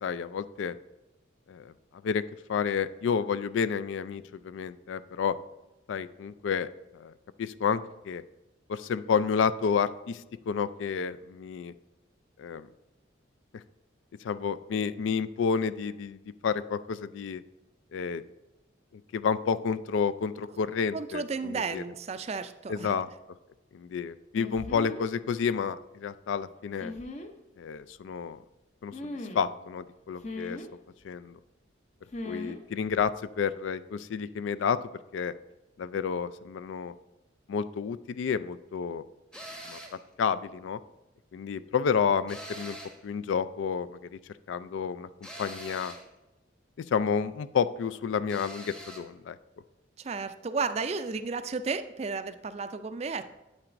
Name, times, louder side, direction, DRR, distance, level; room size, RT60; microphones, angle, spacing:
voice 1, 0.0-0.8 1.5-1.7 2.0-2.2 2.5-5.4 5.9-6.7 6.9-7.1 7.4-8.2 8.7-11.7 12.4-12.7 14.2-17.4 17.9-18.2 19.1-21.8 22.7-23.1 23.7-26.9 27.6-28.4 28.8-30.6 31.0-31.4 32.3-34.8 35.1-35.3 35.8-36.9 37.5-39.0 39.7-40.8 41.3-42.8 43.0-44.2 44.5-45.1 45.4-45.9 46.9-49.4, left 6 dB, 75° left, 14 dB, 0.3 m, -30 dB
voice 2, 20.9-23.0 50.0-53.2, right 4 dB, 35° right, 11 dB, 0.3 m, -33 dB
sound 1, 24.3-25.1 26.8-27.3 28.9-29.5 30.2-30.7 32.1-32.6 32.9-33.1, left 2 dB, 35° left, 0.6 m, -38 dB
sound 2, 39.3-40.0 42.3-43.1 45.2-46.1 48.3-49.1, right 1 dB, 5° left, 0.8 m, -43 dB
8.8 x 7.8 x 2.6 m, 1.0 s
head